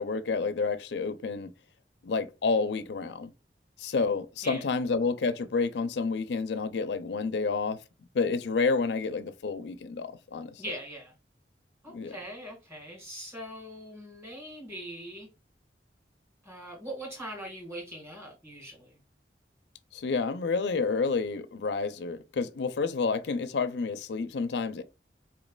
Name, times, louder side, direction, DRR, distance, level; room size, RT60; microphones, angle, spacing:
voice 1, 0.0-1.5 2.0-3.3 3.8-7.8 8.1-10.6 11.9-12.1 19.9-24.8, left 4 dB, 80° left, 0.5 m, -29 dB
voice 2, 10.6-11.1 11.8-15.3 16.4-19.0, right 1 dB, 15° right, 1.8 m, -41 dB
4.5 x 3.1 x 2.3 m
head